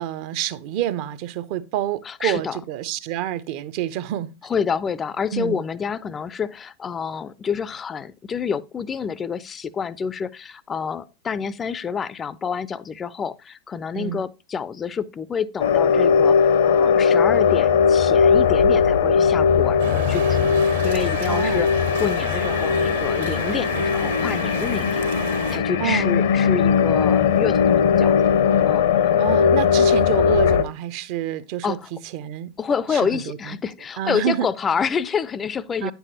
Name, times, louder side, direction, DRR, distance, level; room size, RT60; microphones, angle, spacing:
voice 1, 0.0-4.3 5.3-5.6 13.9-14.2 21.3-21.7 25.8-26.2 29.2-31.8 32.1-32.5 32.9-33.4 34.0-34.5 35.8-35.9, right 11 dB, 45° right, 0.6 m, -27 dB
voice 2, 2.0-2.6 4.4-21.7 22.0-25.1 25.5-28.1 28.6-29.2 31.6-31.9 32.6-35.9, left 6 dB, 20° left, 0.4 m, -28 dB
sound 1, 15.6-30.6, left 6 dB, 60° left, 0.7 m, -19 dB
sound 2, 19.8-25.6, right 6 dB, 65° right, 1.2 m, -32 dB
9.6 x 6.9 x 2.8 m
figure-of-eight pair, 90°, 0 cm